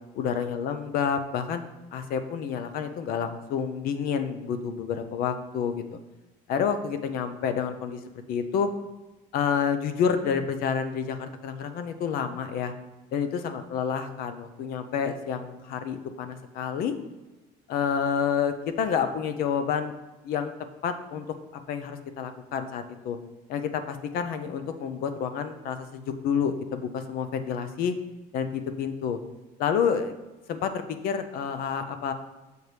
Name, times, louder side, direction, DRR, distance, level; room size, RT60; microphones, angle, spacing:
voice 1, 0.1-1.6 1.9-5.8 6.5-8.0 8.3-8.7 9.3-12.7 13.1-16.9 17.7-19.9 20.2-20.5 20.8-21.3 21.7-23.2 23.5-27.9 28.3-29.2 29.6-30.1 30.5-32.1, left 7 dB, 60° left, 9 dB, 0.5 m, -29 dB
6.6 x 4.5 x 3.3 m, 1.1 s
cardioid pair, 145°, 17 cm